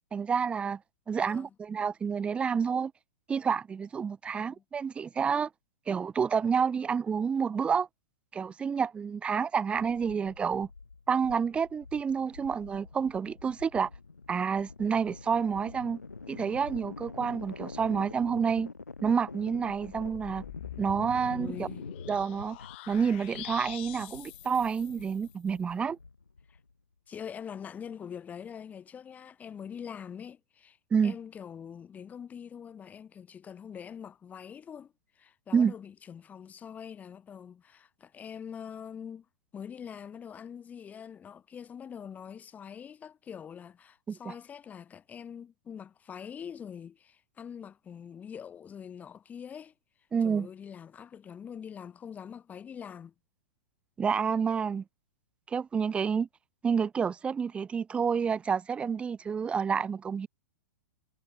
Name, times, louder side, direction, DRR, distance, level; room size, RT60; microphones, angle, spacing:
voice 1, 0.1-0.8 1.1-2.9 3.3-5.5 5.9-7.9 8.3-10.7 11.1-13.9 14.3-16.0 16.3-18.7 19.0-20.4 20.8-21.7 22.1-22.6 22.9-26.0 30.9-31.2 35.5-35.7 44.1-44.3 50.1-50.5 54.0-54.8 55.5-56.3 56.6-60.3, right 6 dB, 15° right, 0.6 m, -29 dB
voice 2, 1.2-1.5 4.3-4.6 21.2-21.9 26.5-26.6 27.1-30.8 31.0-39.3 39.5-49.7 50.2-53.1, left 8 dB, 15° left, 2.2 m, -44 dB
sound 1, 9.7-26.7, left 4 dB, 80° left, 0.9 m, -46 dB
sound 2, 19.6-25.4, left 21 dB, 45° left, 0.8 m, -45 dB
figure-of-eight pair, 105°, 9 cm